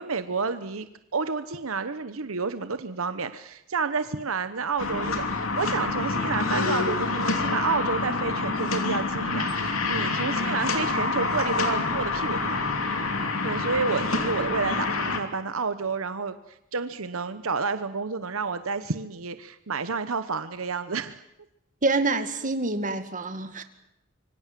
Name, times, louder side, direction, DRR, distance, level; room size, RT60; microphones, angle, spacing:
voice 1, 0.0-12.7 13.4-21.2, right 4 dB, 80° right, 11 dB, 1.0 m, -30 dB
sound 1, 4.8-15.2, left 3 dB, 85° left, 3.0 m, -27 dB
voice 2, 21.8-23.6, right 3 dB, 40° right, 8 dB, 2.0 m, -26 dB
26.0 x 24.0 x 7.6 m, 0.83 s
head